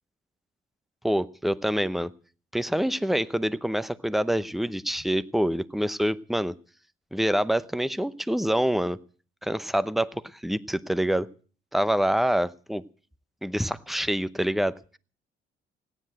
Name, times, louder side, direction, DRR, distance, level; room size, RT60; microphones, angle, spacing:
voice 1, 1.0-2.1 2.5-6.5 7.1-9.0 9.4-11.3 11.7-12.8 13.4-15.0, equal, ahead, 16 dB, 0.8 m, -26 dB
17.0 x 10.0 x 7.7 m, 0.40 s
cardioid pair, 90°, 20 cm